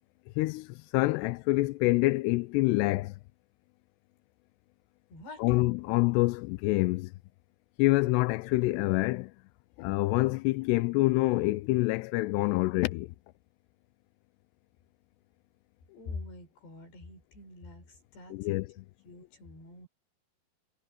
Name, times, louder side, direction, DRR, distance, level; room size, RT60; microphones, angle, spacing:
voice 1, 0.4-3.2 5.4-7.1 7.8-9.3 9.8-13.1 18.3-18.7, left 21 dB, 85° left, 2.5 m, -26 dB
voice 2, 5.1-5.6 15.9-18.6 19.0-19.9, left 3 dB, 65° left, 8.0 m, -45 dB
omnidirectional pair, 5.3 m